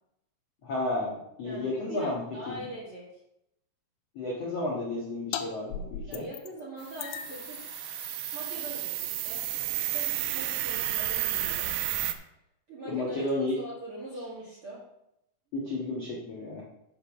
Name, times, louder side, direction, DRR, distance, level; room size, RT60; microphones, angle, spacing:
voice 1, 0.6-2.6 4.1-6.2 12.8-13.5 15.5-16.6, left 2 dB, 65° left, -4 dB, 1.6 m, -32 dB
voice 2, 1.4-3.2 6.1-7.6 8.3-9.4 9.9-11.7 12.7-14.8, right 1 dB, 45° right, -5 dB, 1.8 m, -42 dB
sound 1, 5.3-5.5 5.7-6.6 7.0-12.1, left 8 dB, 90° left, 3.2 m, -42 dB
sound 2, 6.8-12.1, right 12 dB, 90° right, 2.3 m, -32 dB
7.7 x 6.7 x 6.0 m, 0.81 s
omnidirectional pair, 5.4 m